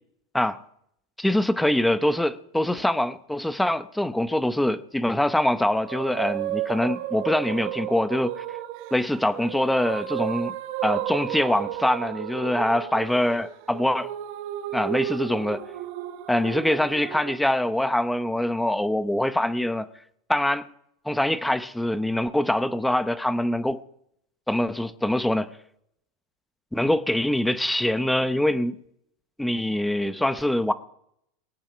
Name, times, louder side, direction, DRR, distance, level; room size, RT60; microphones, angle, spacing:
voice 1, 1.2-8.4 8.9-10.5 10.8-14.1 14.7-15.6 16.3-19.9 20.3-20.6 21.1-23.8 24.5-25.5 26.7-28.8 29.4-30.7, left 1 dB, 5° left, 0.8 m, -24 dB
sound 1, 5.6-17.4, right 14 dB, 60° right, 1.2 m, -33 dB
22.5 x 8.9 x 5.1 m
supercardioid pair, 120°, 0 cm